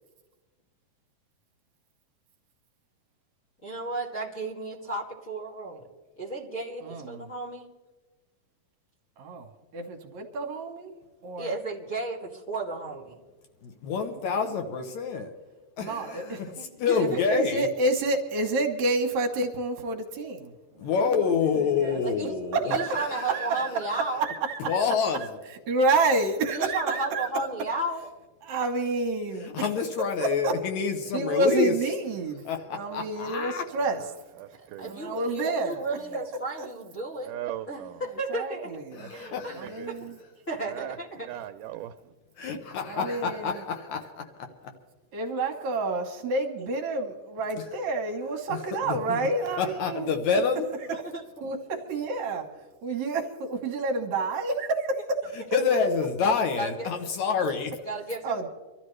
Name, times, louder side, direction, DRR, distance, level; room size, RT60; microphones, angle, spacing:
voice 1, 3.6-5.9 6.2-7.7 11.4-13.2 16.6-17.2 21.0-21.3 22.0-22.3 22.6-24.3 26.5-28.1 34.8-37.3 37.7-38.7 39.1-39.6 39.9-40.0 40.5-41.3 46.6-46.7 50.9-51.2 51.7-51.8 56.5-56.9 57.8-58.5, right 2 dB, 25° left, 2.2 m, -34 dB
voice 2, 6.8-7.2 9.2-10.9 11.2-11.5 15.8-16.6 17.0-20.9 21.8-22.0 22.5-23.9 24.2-24.8 25.2-25.3 25.7-27.5 28.4-29.5 30.2-30.5 31.1-32.4 32.7-34.0 34.8-35.8 36.6-36.7 38.3-39.0 39.5-40.1 42.9-43.6 45.1-50.4 51.4-52.5 52.8-55.2 58.2-58.5, right 2 dB, 65° right, 2.3 m, -29 dB
voice 3, 13.6-15.3 15.8-17.7 20.8-22.8 23.2-23.4 24.7-25.3 29.4-31.7 32.5-33.7 38.9-39.8 42.4-44.2 44.6-44.7 48.5-48.6 48.8-49.2 49.6-50.7 55.5-57.7, left 5 dB, 70° left, 2.0 m, -27 dB
voice 4, 33.7-35.1 35.7-36.1 37.2-38.0 39.0-39.9 40.7-42.1, right 12 dB, 80° right, 2.1 m, -41 dB
24.5 x 13.0 x 3.2 m
omnidirectional pair, 3.8 m